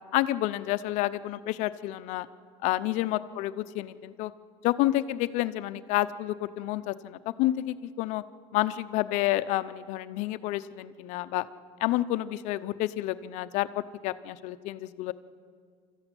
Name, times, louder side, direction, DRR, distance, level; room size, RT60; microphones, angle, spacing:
voice 1, 0.1-2.3 2.6-4.3 4.6-8.2 8.5-11.5 11.8-13.7 14.0-15.1, left 15 dB, 60° left, 13 dB, 0.8 m, -29 dB
26.5 x 14.0 x 9.1 m, 2.1 s
supercardioid pair, 130°, 14 cm